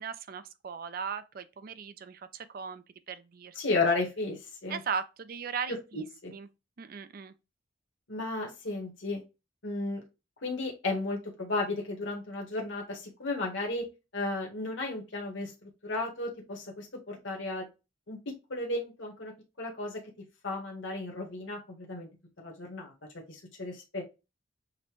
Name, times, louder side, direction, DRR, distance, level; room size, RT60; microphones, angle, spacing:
voice 1, 0.0-3.6 4.7-6.0 6.3-6.5 6.8-7.3, right 6 dB, 45° right, 0.4 m, -38 dB
voice 2, 3.5-4.8 5.7-6.3 8.1-9.2 9.6-10.0 10.4-13.9 14.1-17.7 18.1-18.2 18.5-20.0 20.4-22.1 22.4-24.0, left 2 dB, 65° left, 1.2 m, -34 dB
6.5 x 2.2 x 3.0 m
head